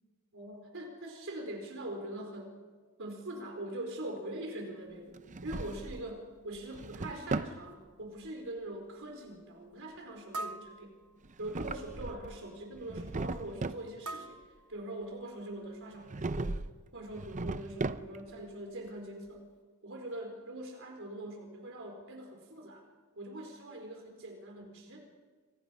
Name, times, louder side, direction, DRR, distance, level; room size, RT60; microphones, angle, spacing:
voice 1, 0.3-2.5 3.0-10.9 11.4-14.4 14.7-16.6 16.9-19.4 19.8-22.8 23.2-25.0, right 1 dB, 60° right, 2 dB, 4.7 m, -43 dB
Drawer open or close, 5.1-6.1 6.6-7.6 11.2-12.4 12.8-13.9 16.1-16.8 17.1-18.4, right 3 dB, 35° right, 0.7 m, -37 dB
sound 1, 7.7-7.8 8.4-8.5 10.3-11.5 14.0-15.3, right 2 dB, 80° right, 1.1 m, -44 dB
29.5 x 25.5 x 5.4 m, 1.4 s
head